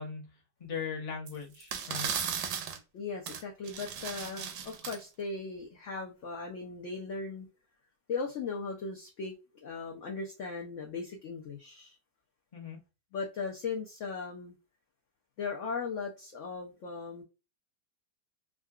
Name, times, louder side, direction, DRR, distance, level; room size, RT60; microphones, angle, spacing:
voice 1, 0.0-2.1 12.5-12.8, left 6 dB, 35° left, 0.6 m, -39 dB
sound 1, 1.3-1.4 1.6-2.8 3.3-3.4 3.7-5.0, right 7 dB, 75° right, 1.2 m, -36 dB
voice 2, 2.9-7.5 8.1-9.4 9.6-12.0 13.1-14.6 15.4-17.2, left 4 dB, 70° left, 0.7 m, -38 dB
3.7 x 2.2 x 2.3 m
omnidirectional pair, 1.9 m